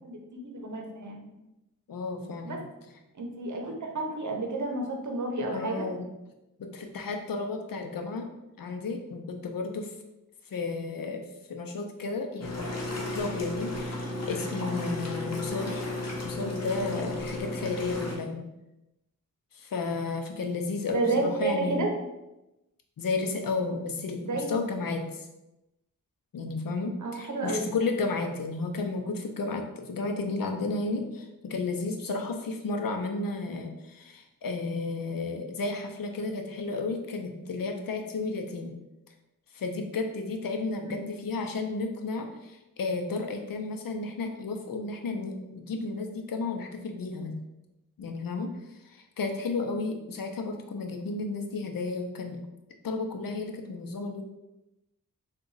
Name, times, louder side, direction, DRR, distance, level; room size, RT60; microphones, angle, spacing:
voice 1, 0.0-1.3 2.4-2.6 3.1-5.9 20.9-21.9 24.2-24.5 27.0-27.7 41.0-41.1, right 2 dB, 60° right, 2 dB, 0.8 m, -30 dB
voice 2, 1.9-2.6 5.5-6.1 6.6-8.3 8.6-10.0 10.4-15.9 16.2-18.4 19.5-21.9 23.0-25.3 26.3-38.8 39.1-39.2 39.5-47.3 48.0-52.4 52.8-54.2, left 3 dB, 75° left, 4 dB, 0.7 m, -33 dB
sound 1, 12.4-18.1, left 2 dB, 50° left, 1.0 m, -34 dB
3.9 x 2.4 x 3.9 m, 0.94 s
wide cardioid pair, 70°, 34 cm